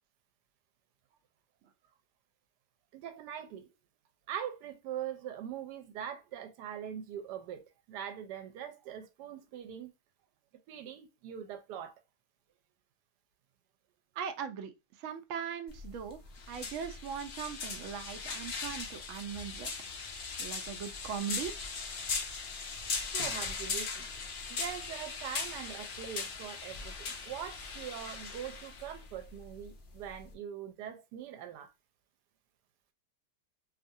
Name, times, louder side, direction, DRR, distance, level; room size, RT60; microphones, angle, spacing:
voice 1, 2.9-3.7 4.3-9.9 10.7-11.9 23.1-24.1 24.5-31.7, right 9 dB, 85° right, 1.2 m, -42 dB
voice 2, 14.2-14.7 15.0-16.2 16.5-19.7 20.4-21.6, right 7 dB, 70° right, 0.7 m, -39 dB
sound 1, 15.7-30.3, left 4 dB, 80° left, 0.4 m, -39 dB
2.7 x 2.4 x 2.6 m
omnidirectional pair, 1.7 m